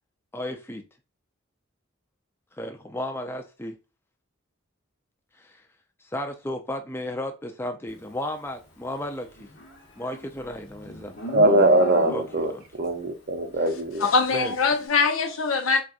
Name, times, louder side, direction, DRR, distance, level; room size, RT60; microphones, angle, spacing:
voice 1, 0.3-0.8 2.5-3.8 5.4-5.6 6.0-9.5 10.0-11.1 11.4-11.5 12.1-12.2 12.5-12.6 14.3-14.5, left 1 dB, 10° left, 0.4 m, -33 dB
Livestock farm animals working animals, 9.4-12.6, left 1 dB, 50° left, 1.1 m, -35 dB
voice 2, 11.3-12.5 12.8-14.1, right 1 dB, 45° right, 0.5 m, -21 dB
voice 3, 14.0-15.8, left 4 dB, 80° left, 0.6 m, -22 dB
4.0 x 2.3 x 2.4 m
head